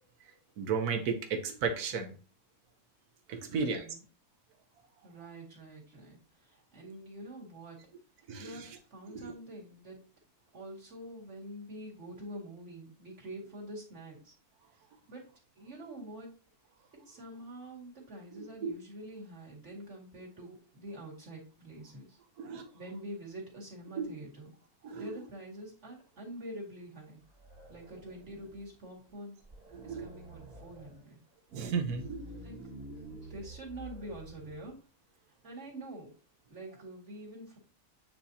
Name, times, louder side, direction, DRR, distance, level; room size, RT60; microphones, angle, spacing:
voice 1, 0.6-2.1 3.3-3.9 8.3-8.5 9.2-9.3 18.6-18.7 22.4-22.7 24.0-24.1 24.8-25.0 29.7-30.1 31.5-32.4, right 5 dB, 85° right, 6 dB, 1.4 m, -33 dB
voice 2, 3.5-4.0 5.0-7.8 8.4-10.0 10.5-14.3 15.1-15.2 15.6-16.3 16.9-22.2 22.7-24.5 24.9-27.2 27.7-29.4 29.8-31.2 32.4-32.6 33.1-34.8 35.4-36.1 36.5-37.6, right 1 dB, 50° right, -2 dB, 2.4 m, -46 dB
sound 1, 27.2-28.7 29.1-29.2 29.4-31.0 31.6-34.7, right 1 dB, 25° right, 1.8 m, -49 dB
8.9 x 4.4 x 2.8 m, 0.36 s
omnidirectional pair, 1.6 m